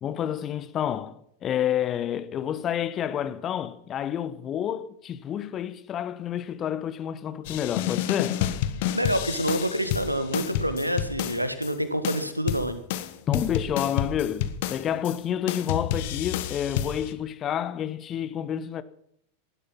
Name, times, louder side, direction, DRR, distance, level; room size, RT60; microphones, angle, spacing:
voice 1, 0.0-8.4 13.3-18.8, left 10 dB, 30° left, 1.2 m, -29 dB
sound 1, 7.4-11.7 12.0-15.2 15.5-17.1, left 11 dB, 50° left, 1.4 m, -30 dB
voice 2, 8.9-12.8, equal, 90° right, 1.7 m, -27 dB
18.5 x 12.0 x 5.8 m
figure-of-eight pair, 90°, 0 cm